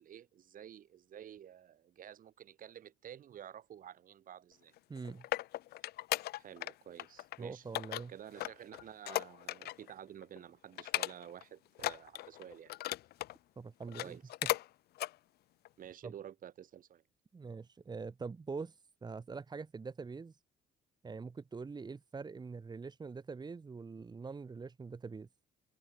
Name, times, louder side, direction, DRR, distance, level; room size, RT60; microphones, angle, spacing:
voice 1, 0.0-4.7 6.3-7.6 8.1-12.7 14.0-14.2 15.8-17.0, right 10 dB, 55° right, 4.3 m, -51 dB
sound 1, 4.8-6.7 7.0-7.4 7.8-9.9 10.2-10.4 10.8-11.4 11.8-13.4 13.8-14.7 15.0-15.1 15.7-15.8, left 15 dB, 70° left, 0.9 m, -37 dB
voice 2, 4.9-5.2 7.4-8.1 13.6-14.2 16.0-16.1 17.3-18.8 19.0-20.3 21.0-25.3, right 4 dB, 25° right, 2.7 m, -44 dB
cardioid pair, 110°, 17 cm